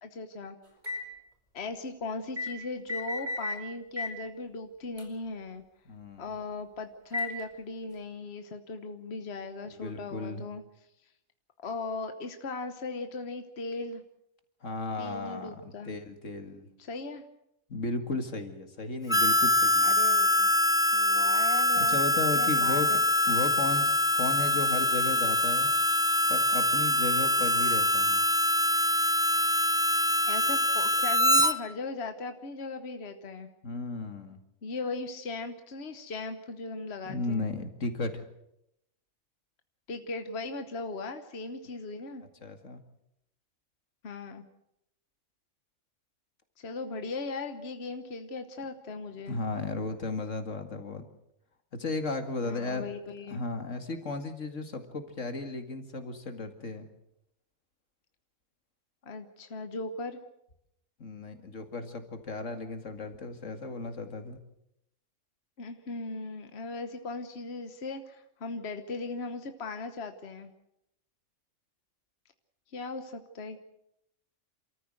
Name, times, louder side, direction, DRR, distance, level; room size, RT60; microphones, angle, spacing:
voice 1, 0.0-0.6 1.5-5.6 6.2-10.6 11.6-14.0 15.0-16.0 16.8-17.2 19.8-20.5 20.9-22.0 22.3-23.0 24.5-24.6 30.3-33.5 34.6-37.4 39.9-42.2 44.0-44.4 46.6-49.4 52.4-53.4 59.0-60.2 65.6-70.5 72.7-73.6, left 3 dB, 60° left, 8 dB, 1.4 m, -38 dB
sound 1, 0.8-1.1 2.4-2.5 2.9-3.6 4.0-4.2 5.0-5.1 7.1-7.4, left 2 dB, 35° right, 4.4 m, -33 dB
voice 2, 5.9-6.3 9.8-10.5 14.6-15.6 15.8-16.7 17.7-20.0 21.8-22.9 23.3-25.7 26.3-28.2 33.6-34.4 37.1-38.2 42.4-42.8 49.3-51.1 51.7-52.9 53.3-56.9 61.0-64.4, left 3 dB, 85° left, 7 dB, 2.4 m, -35 dB
Harmonica, 19.1-31.5, left 1 dB, 5° right, 0.7 m, -24 dB
27.5 x 14.0 x 7.8 m, 0.81 s
omnidirectional pair, 1.3 m